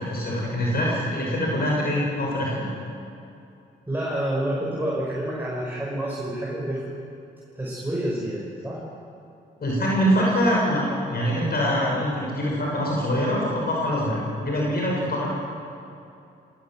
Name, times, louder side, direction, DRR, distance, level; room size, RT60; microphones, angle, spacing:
voice 1, 0.0-2.7 9.6-10.8 11.1-15.3, equal, 55° left, -3 dB, 6.1 m, -24 dB
voice 2, 3.9-6.8 7.6-8.8, right 1 dB, 10° right, -6 dB, 6.1 m, -28 dB
18.5 x 18.0 x 7.7 m, 2.6 s
cardioid pair, 60°, 19 cm